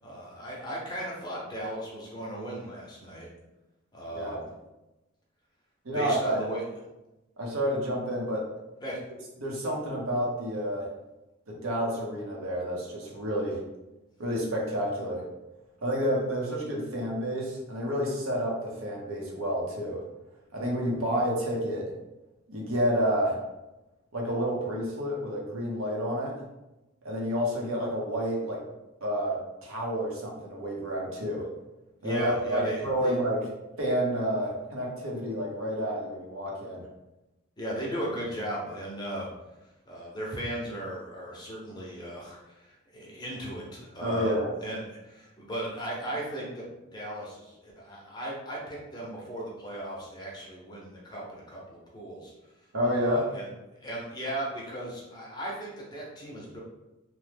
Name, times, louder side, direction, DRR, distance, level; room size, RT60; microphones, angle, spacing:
voice 1, 0.0-3.3 3.9-4.4 5.9-6.6 8.8-9.0 32.0-33.1 37.6-39.3 39.9-44.3 44.6-52.3 52.8-53.5 53.8-56.6, right 1 dB, 20° left, -4 dB, 0.6 m, -36 dB
voice 2, 5.8-6.4 7.4-8.4 9.4-10.8 11.5-13.6 14.2-15.2 15.8-20.0 20.5-21.8 22.5-23.3 24.1-26.3 27.0-28.6 29.0-31.5 32.0-33.4 33.8-36.9 44.0-44.5 52.7-53.3, equal, 90° right, -2 dB, 0.8 m, -29 dB
3.0 x 2.1 x 3.3 m, 1.0 s
head